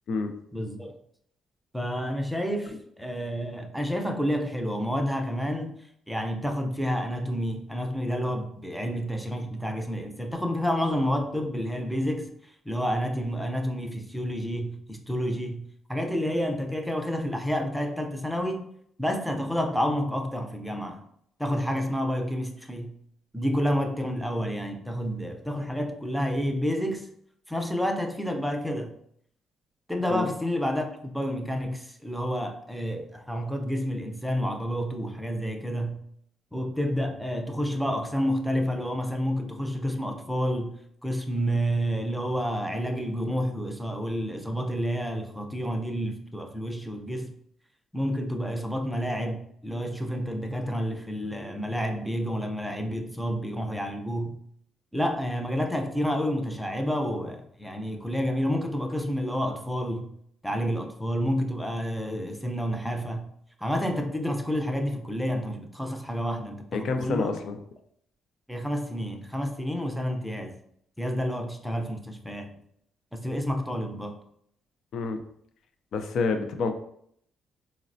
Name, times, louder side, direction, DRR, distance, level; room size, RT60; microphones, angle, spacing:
voice 1, 0.5-1.0 1.7-5.7 6.1-12.3 12.7-15.6 15.9-18.6 19.0-21.0 21.4-22.9 23.3-27.1 27.5-28.9 29.9-36.0 36.5-40.7 41.0-47.3 47.9-54.4 54.9-60.1 60.4-63.3 63.6-67.4 68.5-70.6 71.0-72.5 73.1-74.2, equal, ahead, 4 dB, 0.5 m, -29 dB
voice 2, 66.7-67.6 74.9-75.2 75.9-76.7, left 4 dB, 70° left, 7 dB, 0.4 m, -28 dB
3.9 x 2.0 x 2.6 m, 0.68 s
cardioid pair, 90°, 0 cm